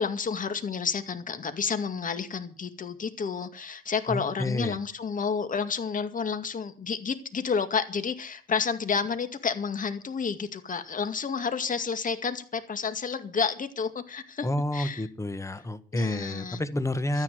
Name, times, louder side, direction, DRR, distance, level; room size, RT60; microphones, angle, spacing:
voice 1, 0.0-14.5 14.7-15.1 15.9-16.6 17.1-17.2, left 5 dB, 40° left, 2.2 m, -30 dB
voice 2, 4.1-4.8 14.4-17.2, left 1 dB, 15° left, 1.5 m, -30 dB
13.0 x 10.0 x 7.9 m
cardioid pair, 90°, 20 cm